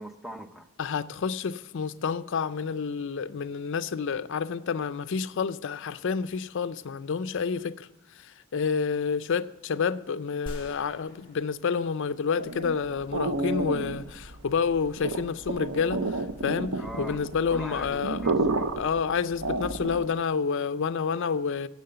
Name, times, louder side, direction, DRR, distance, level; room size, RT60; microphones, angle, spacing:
voice 1, 0.0-0.7 16.8-17.2 17.5-18.7, equal, ahead, 0.6 m, -40 dB
voice 2, 0.8-18.3 18.8-21.7, left 6 dB, 60° left, 0.4 m, -29 dB
sound 1, 10.5-12.7, left 1 dB, 25° left, 2.1 m, -44 dB
sound 2, 12.3-20.2, right 2 dB, 80° right, 0.8 m, -31 dB
10.5 x 7.6 x 7.8 m
head